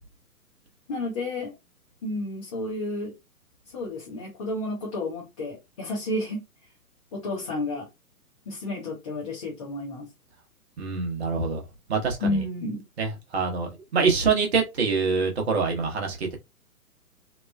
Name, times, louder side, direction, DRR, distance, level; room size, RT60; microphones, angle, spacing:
voice 1, 0.9-1.5 2.0-3.1 3.7-6.4 7.1-7.9 8.5-10.1 12.2-12.8, left 2 dB, 25° left, 0.6 m, -31 dB
voice 2, 10.8-11.6 11.9-12.4 13.0-16.4, right 5 dB, 45° right, 0.9 m, -25 dB
3.0 x 2.1 x 2.2 m
figure-of-eight pair, 125°, 46 cm